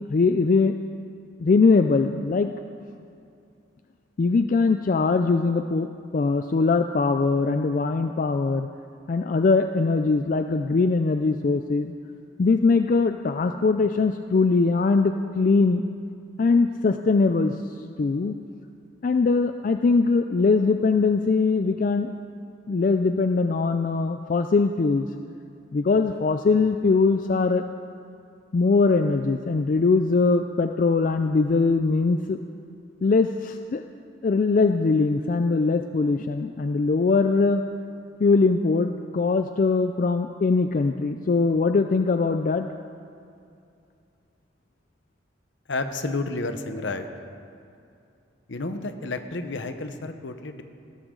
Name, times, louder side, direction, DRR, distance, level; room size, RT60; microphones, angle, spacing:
voice 1, 0.1-0.7 1.4-2.5 4.2-5.9 6.1-8.7 9.1-11.9 12.4-15.8 16.4-17.5 18.0-18.4 19.0-22.1 22.7-25.1 25.7-27.6 28.5-32.4 33.0-33.8 34.2-37.6 38.2-42.7, left 4 dB, 45° left, 7 dB, 0.3 m, -21 dB
voice 2, 45.7-47.1 48.5-50.6, left 2 dB, 70° left, 8 dB, 1.0 m, -31 dB
16.5 x 13.5 x 3.8 m, 2.5 s
head